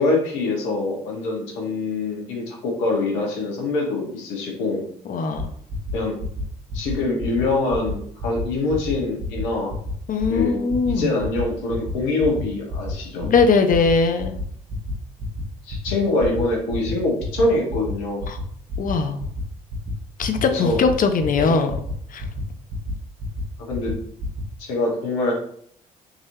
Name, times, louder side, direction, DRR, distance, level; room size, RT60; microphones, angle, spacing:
voice 1, 0.0-4.8 5.9-6.1 6.7-9.7 10.3-10.6 10.9-13.3 15.6-18.2 20.4-20.8 21.4-21.5 23.6-23.9 24.6-25.3, left 2 dB, 80° left, -1 dB, 1.2 m, -24 dB
voice 2, 5.1-5.5 10.1-11.1 13.2-14.4 18.3-18.4 18.8-19.2 20.2-21.7 22.1-22.3, left 4 dB, 45° left, 7 dB, 0.6 m, -20 dB
sound 1, 5.4-5.5 5.7-5.9 6.2-6.4 6.7-6.9 7.2-7.4 7.7-7.9 8.2-8.4 8.7-8.9 9.2-9.4 9.7-9.9 10.2-10.4 10.7-10.9 11.2-11.4 11.7-11.9 12.2-12.4 12.7-12.9 13.2-13.4 13.7-13.9 14.2-14.4 14.7-14.9 15.2-15.4 15.7-15.9 16.2-16.4 16.7-16.9 17.2-17.4 17.7-17.9 18.2-18.4 18.7-18.9 19.2-19.4 19.7-19.9 20.2-20.4 20.7-20.9 21.2-21.4 21.7-21.9 22.2-22.4 22.7-22.9 23.2-23.4 23.7-23.9 24.2-24.4, equal, 60° right, 1.1 m, -29 dB
3.8 x 3.0 x 2.7 m, 0.65 s
hypercardioid pair, 60°, 19 cm